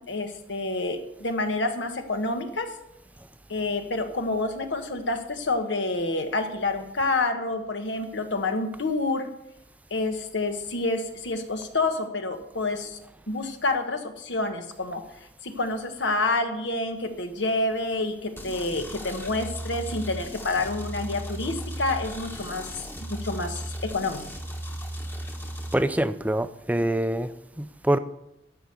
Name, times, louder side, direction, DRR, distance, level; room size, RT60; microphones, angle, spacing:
voice 1, 0.1-2.7 3.5-9.3 9.9-13.0 13.3-15.0 15.4-22.7 23.0-24.2, left 2 dB, 85° left, 1.4 m, -28 dB
sound 1, 18.4-25.7, equal, 10° left, 1.1 m, -36 dB
voice 2, 25.7-27.3 27.6-28.0, right 1 dB, 10° right, 0.4 m, -25 dB
13.0 x 5.1 x 8.0 m
head